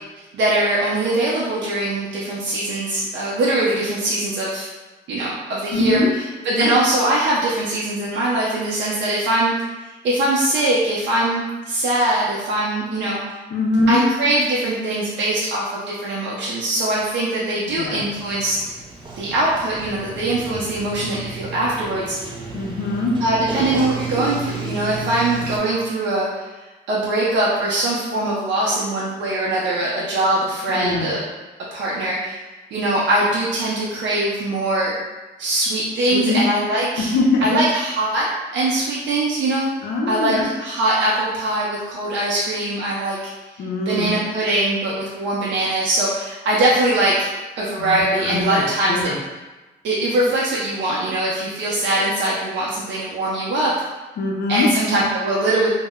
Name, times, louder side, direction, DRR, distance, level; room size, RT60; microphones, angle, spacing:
voice 1, 0.3-4.7 5.1-6.3 6.6-9.6 10.0-13.2 13.9-18.6 19.2-22.2 23.2-31.2 31.7-32.4 32.7-35.0 35.4-37.1 37.4-38.3 38.5-39.7 40.1-43.2 43.6-47.1 47.6-49.1 49.8-53.7 54.5-55.7, right 1 dB, 80° right, -6 dB, 0.5 m, -22 dB
voice 2, 5.7-6.1 6.5-6.8 13.5-14.0 17.6-18.0 22.5-23.1 30.7-31.1 36.1-36.4 37.0-37.6 39.8-40.5 43.6-44.1 47.8-49.2 54.2-54.7, left 3 dB, 60° left, -1 dB, 0.5 m, -22 dB
Sliding door, 17.7-25.6, right 4 dB, 25° right, 0.5 m, -32 dB
2.1 x 2.0 x 3.5 m, 1.2 s
cardioid pair, 115°, 19 cm